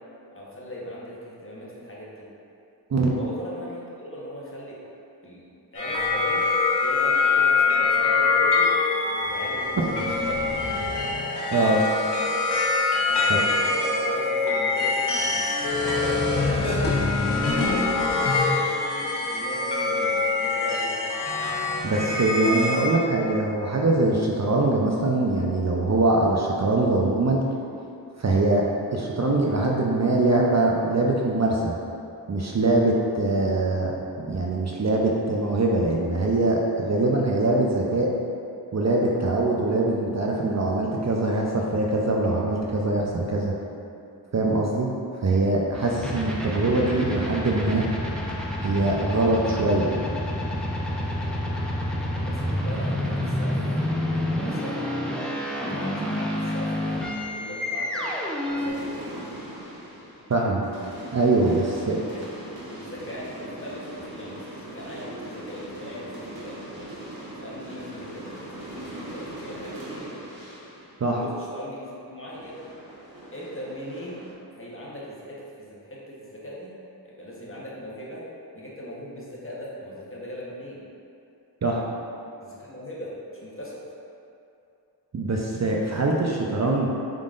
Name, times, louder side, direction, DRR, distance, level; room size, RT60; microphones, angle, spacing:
voice 1, 0.3-2.3 3.1-4.8 5.2-5.5 5.7-6.4 6.8-8.7 9.2-9.7 10.2-10.5 13.1-15.4 16.0-17.9 18.4-21.0 52.3-53.6 54.2-54.8 55.4-57.0 57.3-58.1 58.4-58.9 60.3-60.5 62.1-62.3 62.7-66.9 67.4-70.2 71.0-72.6 73.3-76.7 77.0-78.2 78.5-80.8 82.4-83.1 83.4-83.8, equal, 30° left, -6 dB, 1.1 m, -39 dB
sound 1, 5.7-22.9, left 3 dB, 75° left, 0.9 m, -24 dB
voice 2, 21.8-27.4 28.2-28.7 28.9-31.8 32.3-38.1 38.7-43.5 44.3-44.9 45.2-47.8 48.6-49.9 60.3-60.6 61.1-62.0 71.0-71.2 81.6-81.8 85.1-86.9, right 2 dB, 40° right, -2 dB, 0.5 m, -23 dB
sound 2, 45.7-58.7, left 1 dB, ahead, 0.6 m, -29 dB
sound 3, 56.3-58.1 58.5-72.0 72.3-74.3, right 1 dB, 60° right, 1.2 m, -41 dB
5.0 x 3.7 x 2.5 m, 2.6 s
cardioid pair, 40°, 41 cm